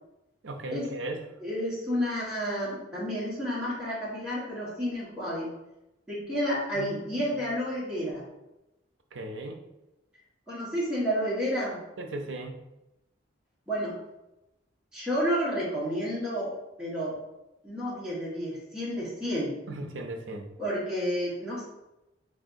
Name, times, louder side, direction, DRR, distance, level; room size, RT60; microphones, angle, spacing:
voice 1, 0.4-1.3 6.7-7.0 9.1-9.6 12.0-12.6 19.7-20.5, right 2 dB, 85° right, 4 dB, 0.5 m, -37 dB
voice 2, 1.4-5.5 6.1-8.2 10.5-11.8 13.7-14.0 14.9-17.1 17.6-19.5 20.6-21.6, equal, 5° right, -9 dB, 1.3 m, -30 dB
3.7 x 3.4 x 2.5 m, 0.94 s
head